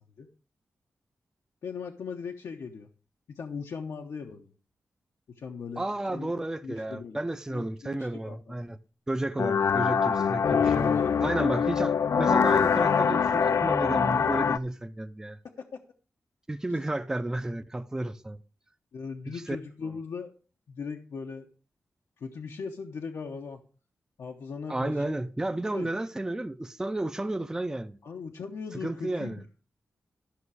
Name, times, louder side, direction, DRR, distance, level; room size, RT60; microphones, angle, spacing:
voice 1, 1.6-2.9 3.3-4.5 5.4-5.8 6.1-6.3 6.6-7.2 7.5-8.6 10.4-11.5 15.6-15.7 18.9-20.3 20.7-21.5 22.2-23.6 24.2-25.2 25.7-25.9 28.0-29.4, left 5 dB, 85° left, 0.9 m, -39 dB
voice 2, 5.8-8.8 9.1-15.4 16.5-18.4 19.3-19.6 24.7-28.0 28.7-29.4, right 1 dB, 10° right, 0.5 m, -32 dB
sound 1, 9.4-14.6, left 6 dB, 65° left, 0.4 m, -24 dB
13.0 x 6.0 x 4.8 m
wide cardioid pair, 130°, 5 cm